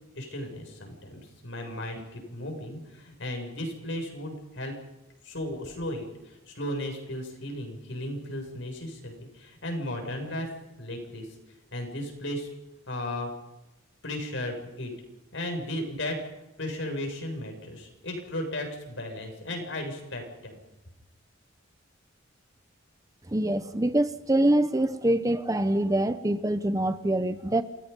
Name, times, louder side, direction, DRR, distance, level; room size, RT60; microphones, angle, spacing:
voice 1, 0.1-4.7 5.2-10.5 10.8-11.3 11.7-12.5 12.9-13.3 14.0-14.9 15.3-16.2 16.6-20.5, left 1 dB, 65° left, 3 dB, 7.4 m, -35 dB
voice 2, 23.3-27.6, right 1 dB, 15° right, 10 dB, 1.0 m, -25 dB
29.0 x 21.0 x 5.5 m, 0.98 s
head